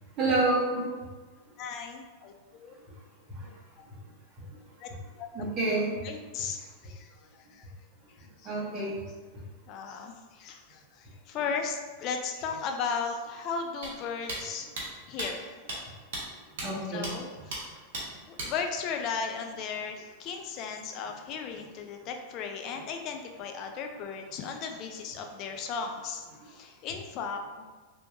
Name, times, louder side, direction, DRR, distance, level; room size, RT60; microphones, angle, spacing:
voice 1, 0.2-0.9 2.8-2.9 3.3-3.5 4.4-4.5 5.3-5.9 8.4-8.9 9.3-9.4 16.6-17.1, right 2 dB, 30° right, -5 dB, 1.1 m, -28 dB
voice 2, 1.6-2.7 4.8-4.9 5.2-5.5 6.0-7.7 8.2-8.5 9.7-14.7 15.1-15.5 16.9-17.8 18.3-27.6, left 5 dB, 40° left, 3 dB, 0.4 m, -36 dB
sound 1, 13.8-13.9 14.3-14.4 14.8-14.9 15.2-15.3 15.7-15.8 16.1-16.2 16.6-16.7 17.0-17.1 17.5-17.6 17.9-18.0 18.4-18.5, right 2 dB, 55° right, 0.9 m, -34 dB
3.3 x 3.0 x 2.6 m, 1.3 s
figure-of-eight pair, 90°, 0 cm